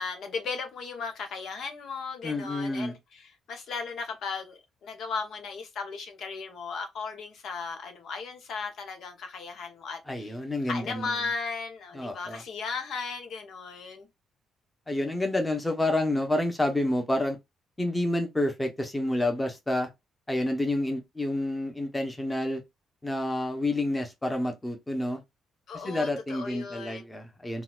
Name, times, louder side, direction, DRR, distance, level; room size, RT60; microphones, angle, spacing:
voice 1, 0.0-10.4 10.6-14.1 25.7-27.1, left 4 dB, 70° left, 0.8 m, -36 dB
voice 2, 2.2-3.0 10.1-11.1 11.9-12.4 14.9-17.4 17.8-19.9 20.3-22.6 23.0-25.2 25.7-27.6, left 1 dB, 10° left, 0.8 m, -29 dB
3.8 x 2.3 x 2.4 m
cardioid pair, 90°, 0 cm